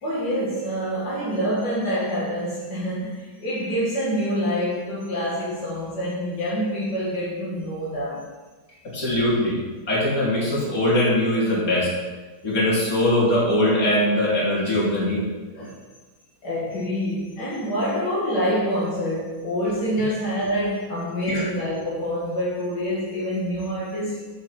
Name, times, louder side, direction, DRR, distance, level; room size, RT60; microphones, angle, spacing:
voice 1, 0.0-8.3 15.5-15.8 16.4-24.3, equal, 80° left, -7 dB, 2.5 m, -26 dB
voice 2, 8.8-9.6 9.9-11.9 12.4-15.2 21.3-21.4, left 1 dB, 55° left, -6 dB, 3.3 m, -21 dB
7.4 x 6.0 x 7.0 m, 1.2 s
omnidirectional pair, 1.8 m